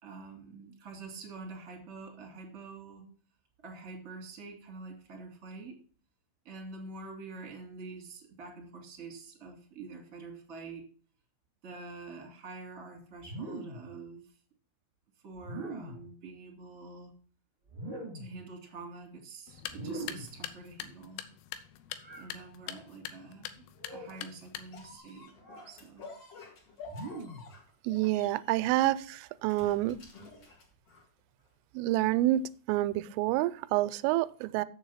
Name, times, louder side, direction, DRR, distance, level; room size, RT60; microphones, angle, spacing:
voice 1, 0.0-3.0 3.6-5.8 6.4-10.9 11.6-14.2 15.2-17.1 18.1-21.3 22.1-25.3 25.6-26.1, right 3 dB, 40° right, 0 dB, 1.2 m, -46 dB
sound 1, 13.2-13.9 15.4-16.1 17.7-18.4 19.7-20.4 22.0-22.3 23.7-24.2 25.4-25.7 26.8-27.5, right 2 dB, 15° right, 1.1 m, -42 dB
sound 2, 19.5-25.0, left 11 dB, 85° left, 3.3 m, -44 dB
sound 3, 24.7-31.2 31.9-32.0, left 3 dB, 50° left, 1.9 m, -50 dB
voice 2, 27.8-30.0 31.7-34.7, right 15 dB, 85° right, 15 dB, 3.1 m, -28 dB
7.5 x 7.3 x 5.5 m, 0.43 s
omnidirectional pair, 5.7 m